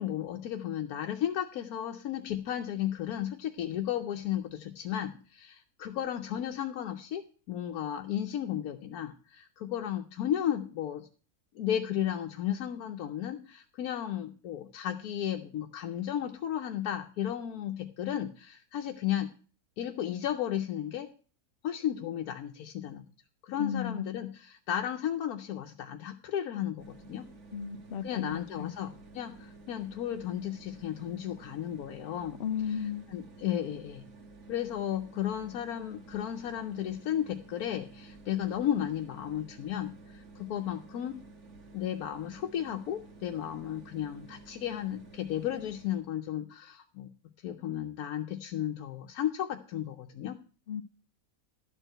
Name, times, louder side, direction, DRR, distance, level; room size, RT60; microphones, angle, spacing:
voice 1, 0.0-7.2 7.5-11.1 11.5-19.3 19.8-21.1 21.6-23.1 23.4-27.3 28.0-32.4 33.1-34.0 34.5-41.3 41.7-47.1 47.4-50.4, left 10 dB, 90° left, 1.2 m, -34 dB
voice 2, 23.6-24.1 27.5-28.7 32.4-33.0 50.7-50.8, left 7 dB, 55° left, 0.7 m, -34 dB
sound 1, 26.8-46.1, right 3 dB, 55° right, 1.4 m, -52 dB
12.0 x 4.5 x 7.7 m
omnidirectional pair, 1.5 m